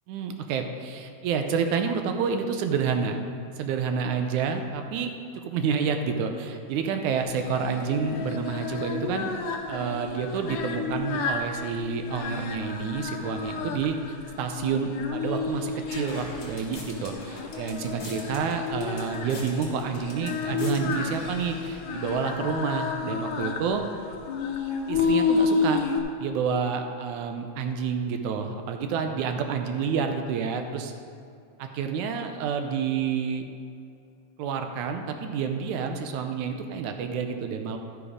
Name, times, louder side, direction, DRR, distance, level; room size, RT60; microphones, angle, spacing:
voice 1, 0.1-3.2 3.6-5.1 5.4-9.3 9.7-14.0 14.4-23.8 24.9-25.8 26.2-30.9 31.6-33.4 34.4-37.8, right 6 dB, 75° right, 5 dB, 2.0 m, -29 dB
Singing, 7.2-26.0, left 5 dB, 75° left, 2.3 m, -31 dB
sound 1, 15.5-22.4, left 2 dB, 45° left, 2.7 m, -43 dB
12.5 x 7.0 x 5.0 m, 2.5 s
omnidirectional pair, 3.7 m